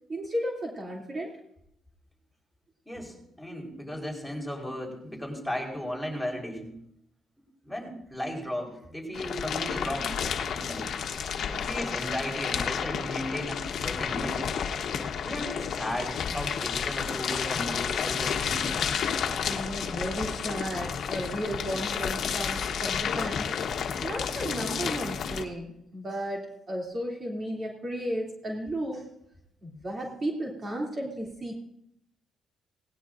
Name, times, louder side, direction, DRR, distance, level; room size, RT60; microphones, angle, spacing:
voice 1, 0.1-1.3 14.7-15.3 16.5-17.1 19.4-23.5 24.0-29.1 29.6-31.5, equal, 35° right, -2 dB, 2.9 m, -34 dB
voice 2, 2.9-6.7 7.6-10.2 10.5-10.9 11.5-14.5 15.2-18.6, equal, ahead, 0 dB, 4.4 m, -35 dB
sound 1, 9.1-25.4, left 7 dB, 65° left, 1.1 m, -31 dB
18.0 x 17.0 x 2.6 m, 0.76 s
cardioid pair, 90°, 0 cm